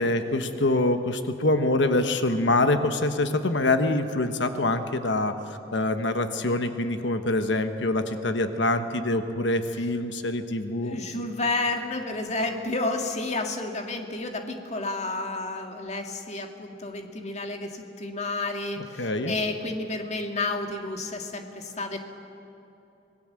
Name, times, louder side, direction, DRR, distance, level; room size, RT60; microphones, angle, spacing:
voice 1, 0.0-11.0 19.0-19.3, left 2 dB, 70° left, 8 dB, 1.2 m, -25 dB
voice 2, 10.7-22.0, left 2 dB, 35° left, 4 dB, 1.9 m, -31 dB
26.0 x 19.0 x 7.6 m, 2.9 s
head